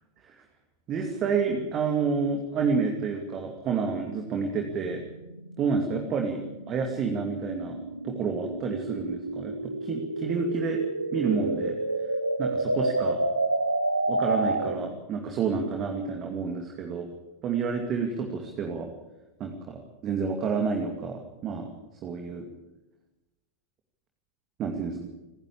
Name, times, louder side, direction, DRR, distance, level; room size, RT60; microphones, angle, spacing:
voice 1, 0.9-5.0 5.6-6.4 6.7-7.8 8.0-10.8 11.1-11.8 12.4-13.2 14.1-17.1 17.4-18.9 19.4-21.7 22.0-22.4 24.6-25.1, right 5 dB, 30° right, 3 dB, 2.5 m, -29 dB
sound 1, 3.8-15.0, right 2 dB, 85° right, 1.1 m, -30 dB
29.5 x 11.0 x 8.6 m, 1.0 s
figure-of-eight pair, 90°, 0 cm